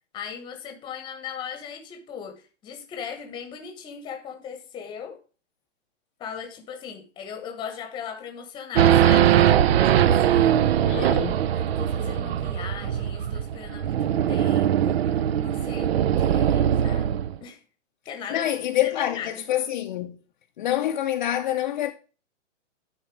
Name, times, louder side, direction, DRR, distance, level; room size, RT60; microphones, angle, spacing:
voice 1, 0.1-5.2 6.2-9.4 9.8-10.6 10.9-11.2 11.5-17.6 18.1-18.6 18.8-19.4, left 7 dB, 10° left, 1.1 m, -38 dB
Race car auto racing / Idling / Accelerating revving vroom, 8.7-17.4, right 10 dB, 55° right, 0.5 m, -21 dB
voice 2, 10.8-11.3 18.3-20.2 20.6-21.9, left 12 dB, 35° left, 0.6 m, -26 dB
10.5 x 4.4 x 6.1 m
hypercardioid pair, 160°, 38 cm